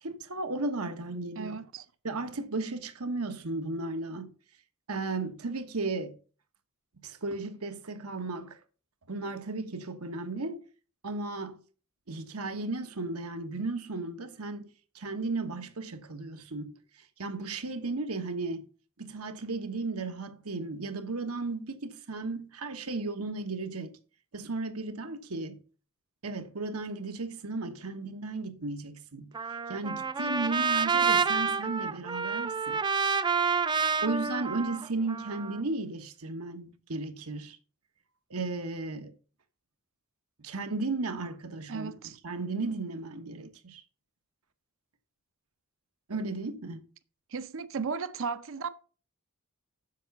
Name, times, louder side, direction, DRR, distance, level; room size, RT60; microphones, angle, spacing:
voice 1, 0.0-1.6 2.0-4.3 4.9-6.2 7.0-8.6 9.1-10.6 11.0-11.6 12.1-14.7 14.9-16.7 17.2-18.7 19.0-24.0 24.3-25.6 26.2-29.3 29.7-32.8 34.0-37.6 38.3-39.1 40.4-41.9 42.2-43.8 46.1-46.8, right 3 dB, 85° right, 1.3 m, -35 dB
voice 2, 1.4-1.8 41.7-42.2 47.3-48.7, right 5 dB, 65° right, 0.6 m, -35 dB
Trumpet, 29.3-35.6, right 5 dB, 20° right, 0.4 m, -28 dB
7.4 x 6.9 x 6.6 m
head